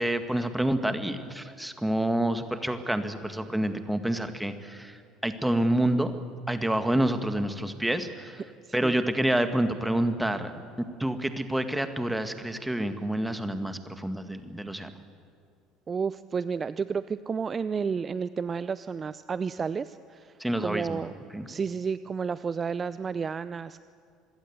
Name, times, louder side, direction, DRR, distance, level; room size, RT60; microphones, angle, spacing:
voice 1, 0.0-6.1 6.5-8.4 8.7-14.9 20.4-21.0 21.3-21.5, right 1 dB, 5° right, 9 dB, 2.0 m, -28 dB
voice 2, 8.6-8.9 15.9-21.1 21.5-23.8, right 6 dB, 30° right, 16 dB, 0.6 m, -31 dB
25.5 x 20.5 x 8.2 m, 2.3 s
figure-of-eight pair, 60°, 0 cm